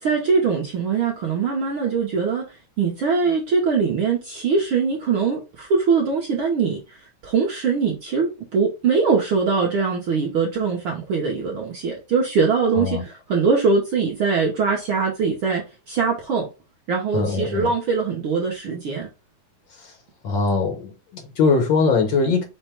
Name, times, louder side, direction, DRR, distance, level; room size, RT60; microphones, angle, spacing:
voice 1, 0.0-16.5 16.9-19.1, right 5 dB, 75° right, 1.2 m, -22 dB
voice 2, 12.7-13.0 17.1-17.7 19.8-19.9 20.2-22.4, left 4 dB, 85° left, 1.0 m, -21 dB
5.4 x 2.1 x 4.3 m
omnidirectional pair, 3.4 m